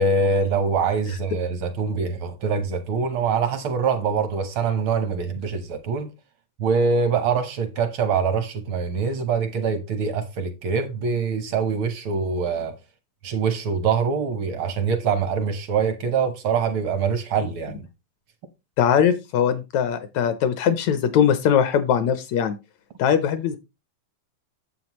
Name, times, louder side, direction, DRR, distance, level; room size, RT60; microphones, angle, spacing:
voice 1, 0.0-6.1 6.6-12.8 13.2-17.8, right 5 dB, 70° right, 1.2 m, -24 dB
voice 2, 18.8-22.6 23.0-23.6, left 8 dB, 75° left, 1.8 m, -21 dB
9.5 x 7.6 x 3.0 m
omnidirectional pair, 3.6 m